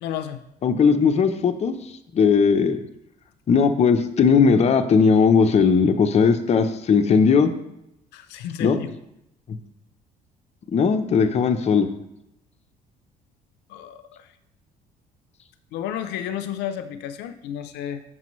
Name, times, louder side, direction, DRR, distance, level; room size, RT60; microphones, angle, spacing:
voice 1, 0.0-0.4 8.1-8.9 13.7-14.3 15.7-18.0, left 10 dB, 85° left, 10 dB, 0.5 m, -32 dB
voice 2, 0.6-2.8 3.5-7.5 8.6-8.8 10.7-11.9, left 5 dB, 40° left, 7 dB, 0.7 m, -18 dB
7.4 x 6.1 x 3.1 m, 0.83 s
cardioid pair, 110°, 17 cm